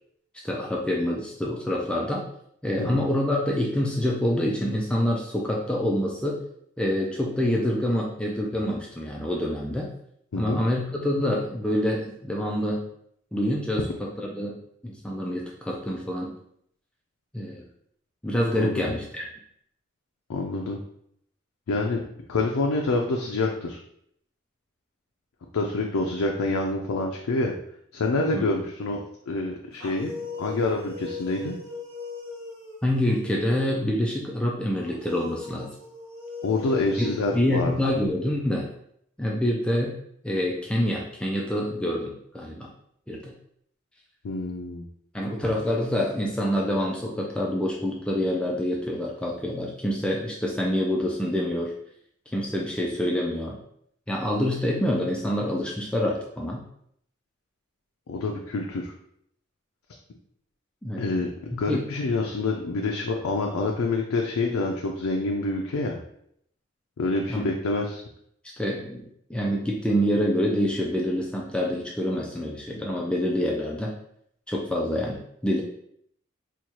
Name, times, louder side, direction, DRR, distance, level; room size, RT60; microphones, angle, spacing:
voice 1, 0.4-2.2 2.6-6.4 6.8-9.9 10.4-12.8 13.3-16.3 17.3-17.7 18.2-19.3 28.3-28.5 32.8-35.7 37.0-38.7 39.2-39.9 40.2-42.7 43.1-43.3 45.1-51.7 52.3-53.6 54.1-56.6 60.8-61.0 61.5-61.8 67.3-67.5 68.6-74.0 74.5-75.6, left 1 dB, 5° left, -2 dB, 0.3 m, -26 dB
voice 2, 10.3-10.6 18.5-18.8 20.3-20.8 21.7-22.0 22.3-23.8 25.5-27.5 27.9-30.1 30.4-31.6 36.4-37.7 44.2-44.8 58.1-58.9 61.0-66.0 67.0-68.0, left 3 dB, 80° left, 1 dB, 0.4 m, -27 dB
sound 1, 29.7-33.5 34.8-38.4, left 3 dB, 80° right, 1.4 m, -40 dB
4.3 x 2.3 x 2.9 m, 0.70 s
head